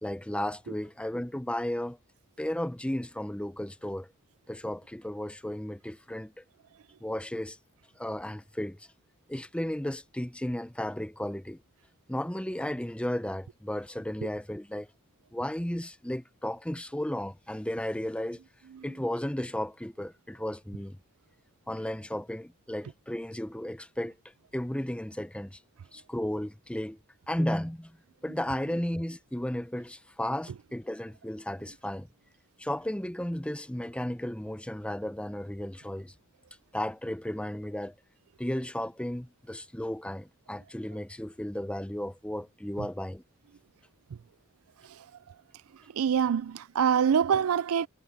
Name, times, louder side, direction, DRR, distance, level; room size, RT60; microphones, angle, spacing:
voice 1, 0.0-2.0 2.4-4.1 4.5-6.3 7.0-7.6 8.0-8.9 9.3-11.6 12.1-14.9 15.3-18.4 18.8-21.0 21.7-24.2 24.5-25.6 25.9-27.0 27.3-27.9 28.2-32.1 32.6-36.1 36.7-37.9 38.4-43.2, left 1 dB, 5° left, 0.7 m, -34 dB
voice 2, 45.9-47.9, right 7 dB, 70° right, 0.4 m, -25 dB
head